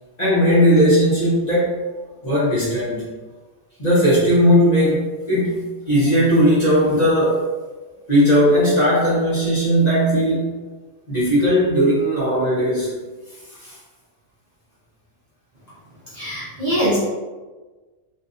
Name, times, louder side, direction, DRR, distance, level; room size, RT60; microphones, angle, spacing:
voice 1, 0.2-1.8 2.2-3.1 3.8-7.4 8.1-10.5 11.1-12.9 13.5-13.8, equal, 35° left, -10 dB, 0.8 m, -17 dB
voice 2, 16.1-17.0, equal, 40° right, -11 dB, 0.7 m, -22 dB
2.6 x 2.5 x 2.4 m, 1.3 s
omnidirectional pair, 1.3 m